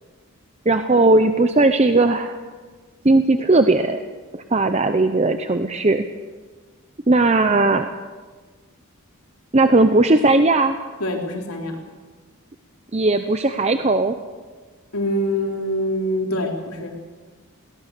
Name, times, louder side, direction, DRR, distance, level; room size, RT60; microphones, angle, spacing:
voice 1, 0.7-2.4 3.0-4.0 4.3-6.0 7.1-7.9 9.5-10.7 12.9-14.1, right 2 dB, 30° right, 8 dB, 0.7 m, -17 dB
voice 2, 11.0-11.8 14.9-16.9, left 1 dB, 90° left, 1 dB, 3.9 m, -24 dB
22.5 x 18.5 x 6.7 m, 1.4 s
head